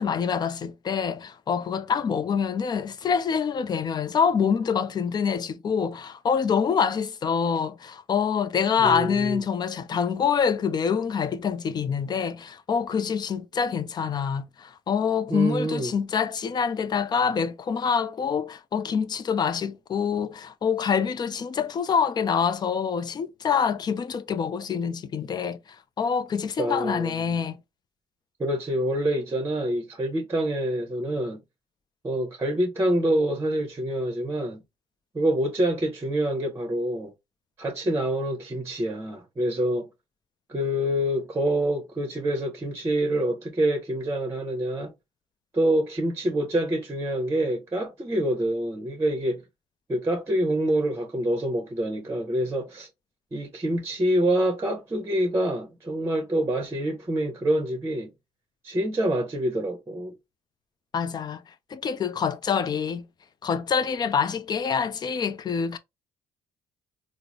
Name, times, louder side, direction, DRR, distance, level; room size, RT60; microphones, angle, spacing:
voice 1, 0.0-27.6 60.9-63.0 63.4-65.8, left 6 dB, 40° left, 0.5 m, -26 dB
voice 2, 8.8-9.4 15.3-15.9 26.6-27.4 28.4-31.4 32.0-34.6 35.1-37.1 37.6-39.9 40.5-44.9 45.5-49.4 49.9-52.9 53.3-58.1 58.6-60.1, right 1 dB, 25° right, 0.8 m, -26 dB
3.7 x 2.0 x 3.0 m
supercardioid pair, 80°, 11 cm